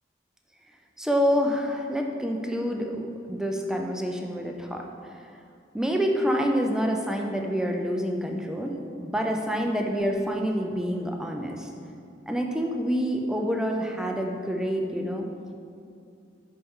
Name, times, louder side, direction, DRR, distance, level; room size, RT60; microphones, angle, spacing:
voice 1, 1.0-4.8 5.7-11.7 12.3-15.3, equal, 5° right, 1 dB, 0.5 m, -27 dB
10.5 x 4.5 x 3.8 m, 2.5 s
head